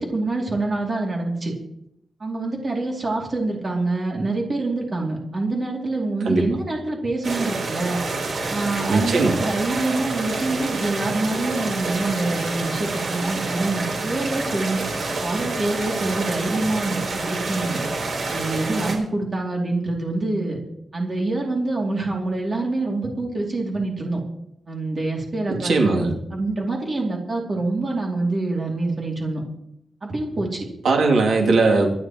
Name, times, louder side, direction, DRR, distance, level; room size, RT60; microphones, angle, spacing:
voice 1, 0.0-1.5 2.2-8.0 8.5-14.8 15.2-17.8 18.3-20.6 20.9-24.2 24.7-29.4 30.0-30.7, right 2 dB, 35° right, -1 dB, 2.6 m, -26 dB
sound 1, 7.2-19.0, right 3 dB, 60° right, 3.9 m, -28 dB
voice 2, 8.9-9.3 25.6-26.1 30.8-31.9, right 3 dB, 85° right, 0 dB, 2.7 m, -19 dB
25.5 x 10.5 x 3.0 m, 0.78 s
wide cardioid pair, 165°, 0 cm